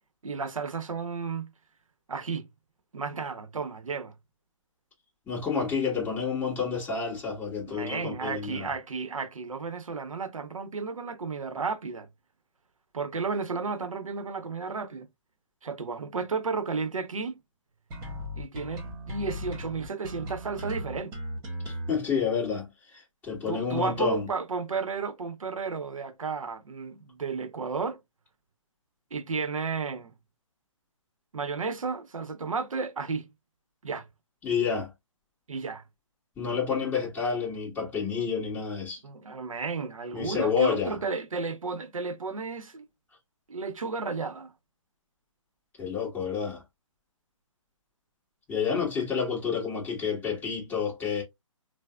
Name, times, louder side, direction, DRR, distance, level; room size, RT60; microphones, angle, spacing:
voice 1, 0.2-1.5 2.1-2.5 2.9-4.1 7.7-12.1 12.9-15.1 15.6-17.4 18.4-21.2 23.5-28.0 29.1-30.1 31.3-33.3 33.8-34.1 35.5-35.8 39.0-42.9 43.5-44.5, right 4 dB, 80° right, 0.7 m, -33 dB
voice 2, 5.3-8.7 21.6-24.2 34.4-34.9 36.4-39.0 40.1-41.0 45.8-46.6 48.5-51.2, left 6 dB, 10° left, 1.5 m, -29 dB
sound 1, 17.9-21.9, equal, 20° right, 1.2 m, -37 dB
4.8 x 2.0 x 2.3 m
figure-of-eight pair, 140°, 17 cm